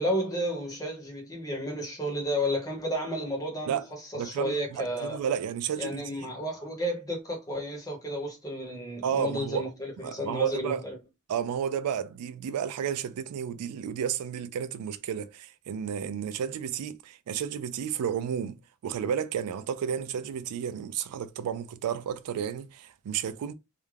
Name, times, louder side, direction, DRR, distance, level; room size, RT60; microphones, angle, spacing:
voice 1, 0.0-3.8 4.1-5.2 5.8-11.0, equal, 15° left, 0.8 m, -32 dB
voice 2, 4.2-6.3 9.0-9.7 10.0-10.8 11.3-23.5, right 8 dB, 85° right, 0.3 m, -32 dB
2.4 x 2.1 x 3.1 m
head